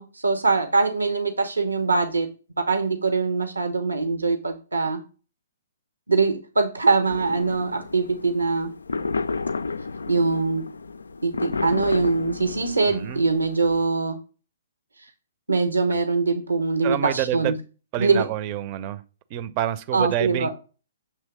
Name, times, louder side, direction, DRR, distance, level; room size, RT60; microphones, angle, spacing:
voice 1, 0.0-2.3 2.6-5.0 6.1-8.7 10.1-10.7 11.2-14.2 15.5-17.5 18.0-18.3 19.9-20.5, right 4 dB, 80° right, 0.9 m, -23 dB
sound 1, 7.1-13.8, left 4 dB, 75° left, 0.3 m, -32 dB
voice 2, 12.8-13.3 16.8-17.6 17.9-19.0 19.3-20.5, right 12 dB, 35° right, 0.6 m, -27 dB
7.2 x 3.1 x 6.0 m
figure-of-eight pair, 125°, 0 cm